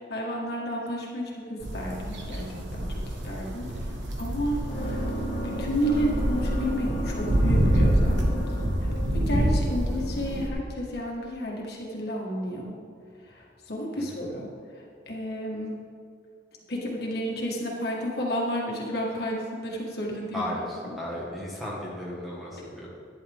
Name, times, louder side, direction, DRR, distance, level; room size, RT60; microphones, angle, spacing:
voice 1, 0.0-3.9 4.2-5.1 5.4-8.5 8.8-12.8 13.2-14.5 15.1-15.8 16.7-20.4, equal, 60° left, -2 dB, 1.8 m, -32 dB
sound 1, 1.6-10.5, right 1 dB, 85° right, 1.3 m, -27 dB
sound 2, 4.5-10.6, right 1 dB, 40° left, 1.7 m, -35 dB
voice 2, 20.3-22.9, left 1 dB, ahead, -6 dB, 1.8 m, -35 dB
11.5 x 9.9 x 3.6 m, 2.3 s
head